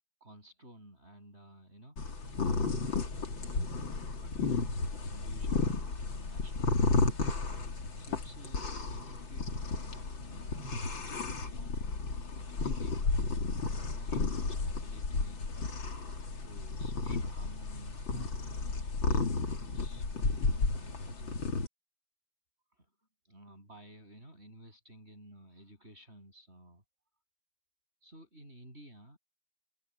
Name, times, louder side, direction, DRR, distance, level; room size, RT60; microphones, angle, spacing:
voice 1, 0.2-2.0 2.5-3.1 4.1-7.7 8.0-15.9 16.4-21.4 22.7-22.9 23.2-26.8 28.0-29.2, right 1 dB, 20° right, 7.6 m, -54 dB
sound 1, 2.0-21.7, left 3 dB, 40° left, 3.1 m, -33 dB
omnidirectional pair, 3.5 m